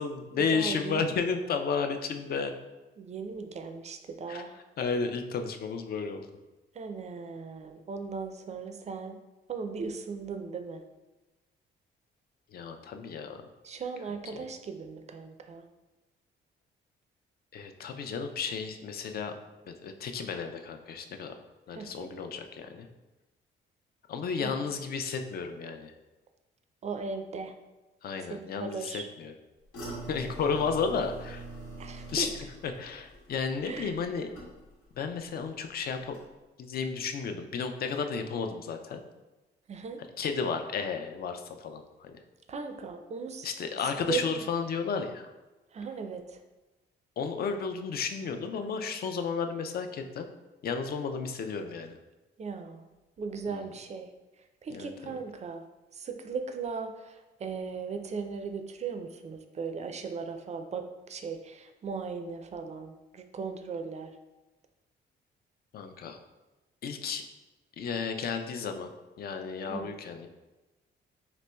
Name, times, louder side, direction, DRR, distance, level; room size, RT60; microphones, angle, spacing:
voice 1, 0.0-2.5 4.3-6.3 12.5-13.4 14.0-14.5 17.5-19.3 19.7-21.3 21.7-22.9 24.1-25.9 28.0-29.3 30.1-31.5 32.1-34.3 35.0-36.2 36.6-39.0 40.2-42.2 43.4-45.3 47.2-50.3 50.6-52.0 53.5-53.7 54.7-55.2 65.7-66.2 66.8-67.2 67.8-68.9 69.2-70.3, left 5 dB, 50° left, 6 dB, 0.4 m, -33 dB
voice 2, 0.5-1.1 3.0-4.5 6.8-9.2 9.5-10.8 13.6-15.6 21.7-22.1 24.4-24.5 26.8-27.5 28.3-29.1 31.8-32.3 33.7-33.9 39.7-40.0 42.5-43.5 44.1-44.4 45.7-46.4 52.4-52.9 53.2-54.1 54.6-55.6 55.9-64.1 69.7-69.9, right 5 dB, 35° right, 7 dB, 0.4 m, -37 dB
sound 1, 29.7-35.0 35.3-35.7 36.1-36.2, right 2 dB, 85° left, 1.1 m, -44 dB
4.1 x 2.9 x 2.2 m, 1.1 s
cardioid pair, 90°, 20 cm